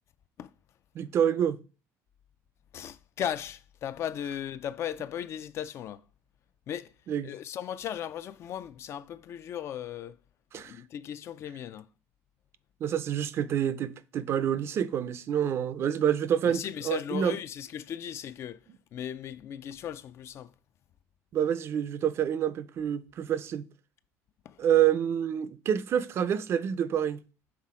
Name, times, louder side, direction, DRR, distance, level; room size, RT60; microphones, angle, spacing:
voice 1, 1.0-1.6 7.1-7.3 10.5-10.7 12.8-17.3 21.3-23.6 24.6-27.2, right 9 dB, 40° right, 0.4 m, -27 dB
voice 2, 2.7-6.0 6.7-6.9 7.2-10.2 10.5-11.9 16.4-18.6 18.9-20.5 24.5-24.6, left 10 dB, 40° left, 0.3 m, -37 dB
5.8 x 3.7 x 4.7 m
cardioid pair, 150°, 7 cm